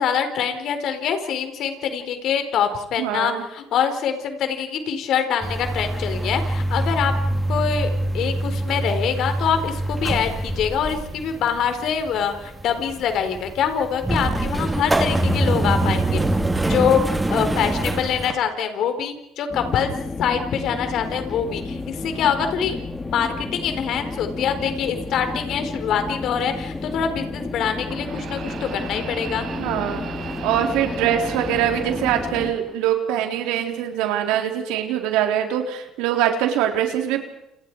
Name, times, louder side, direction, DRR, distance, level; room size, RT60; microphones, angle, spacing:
voice 1, 0.0-7.1 7.5-16.2 16.7-19.9 20.2-22.8 23.1-29.5, left 7 dB, 65° left, 7 dB, 4.3 m, -24 dB
voice 2, 3.0-3.4 29.6-30.1 30.4-37.2, right 10 dB, 80° right, 4 dB, 4.0 m, -23 dB
sound 1, 5.4-18.3, right 1 dB, 15° right, 3.7 m, -24 dB
sound 2, 19.5-32.5, left 3 dB, 20° left, 3.5 m, -32 dB
sound 3, 25.7-25.8 27.8-32.9 33.2-34.0 34.8-34.9 35.9-36.0, right 7 dB, 60° right, 5.4 m, -36 dB
29.5 x 29.5 x 4.9 m, 0.84 s
hypercardioid pair, 65°, 0 cm